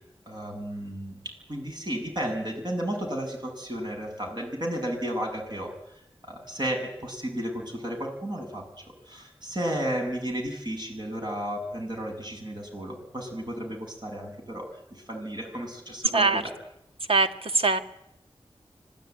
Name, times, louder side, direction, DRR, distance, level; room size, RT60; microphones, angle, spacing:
voice 1, 0.3-8.7 9.1-16.5, right 1 dB, 45° right, 2 dB, 7.6 m, -33 dB
voice 2, 17.1-17.8, right 3 dB, 70° right, 7 dB, 1.9 m, -22 dB
26.0 x 19.5 x 9.5 m, 0.83 s
wide cardioid pair, 55°, 10 cm